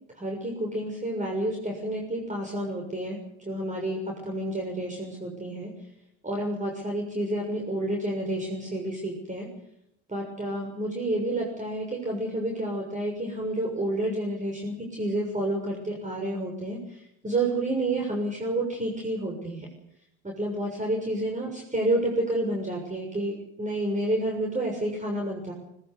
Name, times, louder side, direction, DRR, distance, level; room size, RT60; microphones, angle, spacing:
voice 1, 0.1-5.7 6.2-9.5 10.1-19.7 20.2-25.5, right 1 dB, 20° right, 0 dB, 6.8 m, -30 dB
21.0 x 20.0 x 8.1 m, 0.82 s
supercardioid pair, 75°, 36 cm